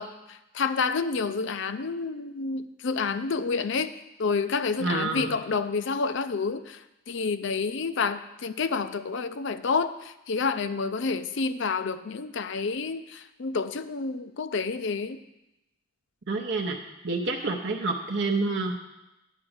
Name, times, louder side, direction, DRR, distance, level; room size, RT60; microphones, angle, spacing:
voice 1, 0.0-3.9 4.2-15.2, left 4 dB, 55° left, 12 dB, 0.5 m, -29 dB
voice 2, 4.8-5.4 16.3-16.8 17.0-18.7, right 3 dB, 55° right, 1 dB, 0.7 m, -28 dB
10.0 x 4.9 x 7.8 m, 0.93 s
head